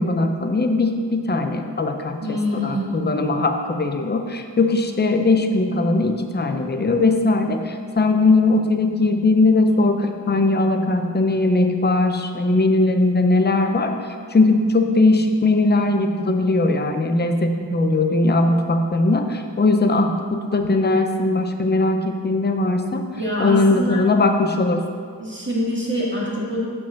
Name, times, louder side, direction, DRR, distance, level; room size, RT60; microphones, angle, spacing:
voice 1, 0.0-23.0 23.4-24.8, left 2 dB, 25° left, 5 dB, 0.6 m, -19 dB
voice 2, 2.2-3.1 23.1-24.0 25.2-26.6, equal, 25° right, -6 dB, 2.0 m, -25 dB
7.4 x 4.8 x 5.8 m, 2.1 s
wide cardioid pair, 70°, 42 cm